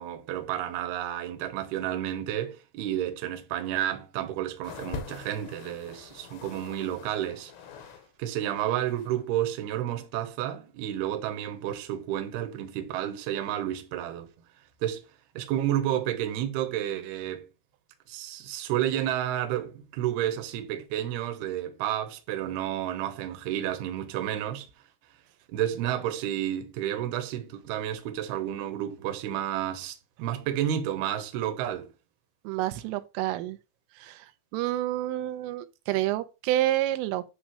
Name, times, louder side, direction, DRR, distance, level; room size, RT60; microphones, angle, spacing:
voice 1, 0.0-7.5 8.2-14.3 14.8-15.0 15.3-17.5 18.1-24.7 25.5-31.9, right 11 dB, 70° right, 2.8 m, -31 dB
sound 1, 4.6-8.1 8.3-9.2 10.0-10.1, left 5 dB, 90° left, 3.9 m, -44 dB
voice 2, 32.4-33.6 34.0-34.2 34.5-37.2, right 14 dB, 90° right, 3.3 m, -28 dB
10.0 x 3.7 x 6.2 m
omnidirectional pair, 5.6 m